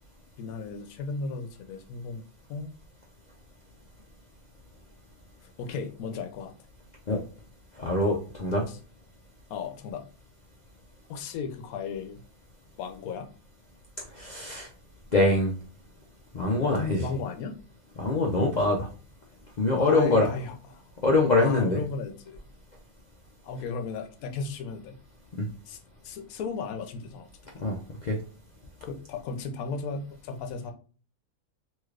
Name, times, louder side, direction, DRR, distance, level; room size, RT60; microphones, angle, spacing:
voice 1, 0.4-2.7 5.4-6.5 8.7-8.8 9.5-10.1 11.1-12.2 12.8-13.3 16.6-17.6 19.8-20.8 21.4-22.4 23.4-25.0 25.7-25.8 26.0-27.7 28.8-30.7, left 5 dB, 75° left, 6 dB, 1.1 m, -35 dB
voice 2, 7.8-8.6 14.1-14.7 15.1-15.5 16.3-17.0 18.0-18.9 19.6-20.4 21.0-21.8 25.4-25.5 27.6-28.2, left 2 dB, 60° left, -2 dB, 0.4 m, -24 dB
3.2 x 3.0 x 2.4 m, 0.38 s
omnidirectional pair, 1.5 m